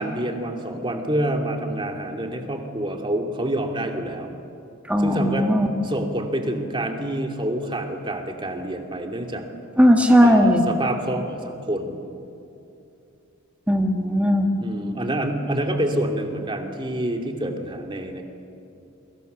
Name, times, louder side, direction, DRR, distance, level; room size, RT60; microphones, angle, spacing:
voice 1, 0.0-4.3 5.0-5.5 5.8-9.5 10.2-12.0 14.6-18.2, right 1 dB, 25° right, 3 dB, 2.7 m, -27 dB
voice 2, 4.9-5.7 9.8-10.7 13.7-14.6, equal, 5° right, 3 dB, 1.7 m, -17 dB
30.0 x 24.0 x 7.0 m, 2.7 s
head